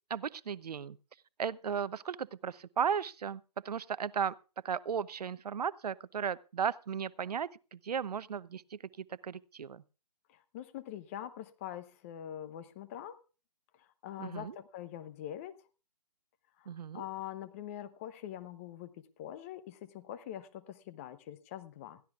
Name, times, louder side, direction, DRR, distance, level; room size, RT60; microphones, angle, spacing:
voice 1, 0.1-1.0 1.4-4.3 4.6-8.8 9.2-9.8 14.2-14.6 16.7-17.0, right 7 dB, 75° right, 0.6 m, -35 dB
voice 2, 10.3-13.2 13.8-15.6 16.6-22.0, left 11 dB, 20° left, 0.6 m, -44 dB
21.0 x 14.0 x 2.4 m
hypercardioid pair, 150°, 21 cm